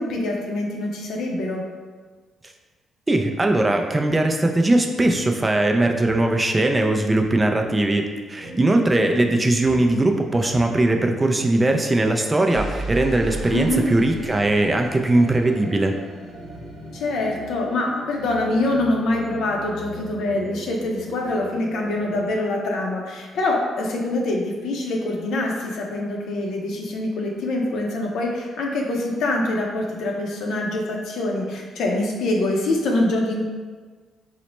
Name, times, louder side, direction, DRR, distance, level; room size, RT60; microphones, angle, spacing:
voice 1, 0.0-1.6 13.5-13.8 16.9-33.4, left 2 dB, 75° left, 0 dB, 0.6 m, -24 dB
voice 2, 3.1-16.0, right 2 dB, 20° right, 3 dB, 0.3 m, -20 dB
sound 1, 5.0-5.2 6.0-6.2 7.2-7.7 8.4-8.6 9.2-9.4 9.6-9.8 10.5-10.7 12.5-22.3, right 1 dB, 85° right, 0.9 m, -36 dB
4.0 x 2.0 x 3.0 m, 1.4 s
cardioid pair, 90°, 0 cm